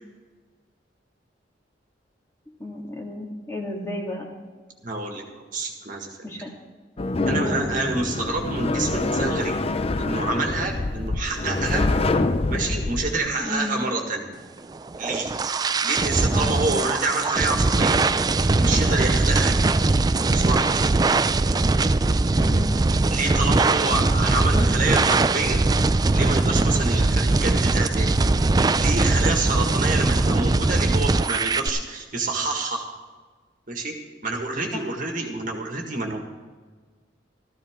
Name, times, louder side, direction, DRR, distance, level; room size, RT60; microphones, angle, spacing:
voice 1, 2.6-4.3 6.2-6.5 7.4-7.6 13.4-13.8 16.3-16.8 22.3-22.8 24.5-24.7 34.7-34.9, left 1 dB, 15° left, -1 dB, 2.0 m, -32 dB
voice 2, 4.8-6.3 7.3-9.6 10.0-11.8 12.5-14.2 15.0-15.3 15.8-18.0 18.6-19.8 20.3-21.0 23.1-25.6 26.1-28.2 28.8-32.9 33.7-33.9 34.2-36.2, right 3 dB, 50° right, 2 dB, 1.8 m, -27 dB
sound 1, 7.0-13.2, left 2 dB, 35° left, 0.5 m, -25 dB
sound 2, 14.7-31.7, right 3 dB, 20° right, 0.3 m, -21 dB
14.0 x 14.0 x 3.7 m, 1.4 s
head